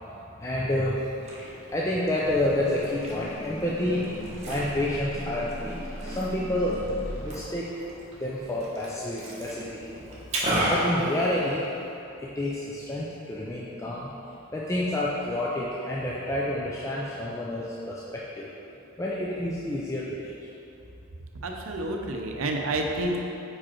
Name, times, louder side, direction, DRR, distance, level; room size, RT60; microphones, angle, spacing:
voice 1, 0.1-1.1 1.7-4.1 4.4-7.7 8.2-9.9 10.7-11.6 12.2-14.1 14.5-18.5 19.0-20.5, left 1 dB, 15° left, -6 dB, 0.4 m, -29 dB
Liquid, 0.9-11.9, right 1 dB, 30° right, 1.0 m, -35 dB
sound 1, 2.2-7.4, equal, 80° left, 1.1 m, -38 dB
voice 2, 21.4-23.2, right 1 dB, 80° right, 2 dB, 0.6 m, -29 dB
5.0 x 4.8 x 4.4 m, 2.8 s
head